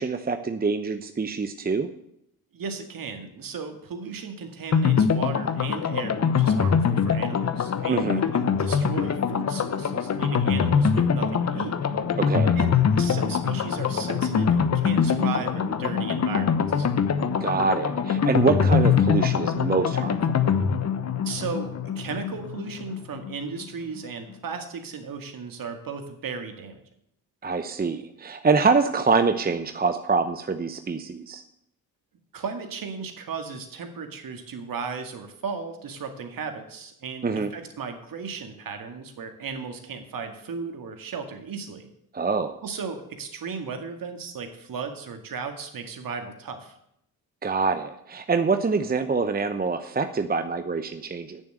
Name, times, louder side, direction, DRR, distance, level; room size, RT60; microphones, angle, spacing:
voice 1, 0.0-1.9 7.9-8.3 12.2-12.6 17.4-20.2 27.4-31.4 37.2-37.5 42.1-42.6 47.4-51.4, right 4 dB, 20° right, 8 dB, 0.8 m, -25 dB
voice 2, 2.5-11.8 12.6-16.9 21.2-26.8 32.3-41.9 42.6-46.8, right 5 dB, 50° right, 6 dB, 2.0 m, -35 dB
sound 1, 4.7-23.3 23.6-23.7 24.0-24.1, left 6 dB, 40° left, 1.0 m, -23 dB
9.2 x 7.0 x 7.9 m, 0.77 s
hypercardioid pair, 45°, 42 cm